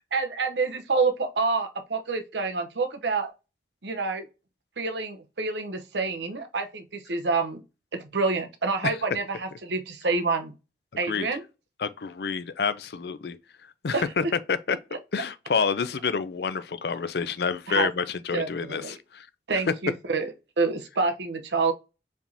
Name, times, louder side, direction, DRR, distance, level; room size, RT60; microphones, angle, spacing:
voice 1, 0.1-3.3 3.8-4.3 4.8-7.6 7.9-10.5 11.0-11.4 13.9-14.3 17.7-17.9 18.3-18.9 19.5-21.7, right 4 dB, 80° right, 0.8 m, -27 dB
voice 2, 11.8-13.4 13.8-14.8 15.1-19.3, left 5 dB, 65° left, 0.5 m, -28 dB
4.9 x 3.4 x 2.7 m
head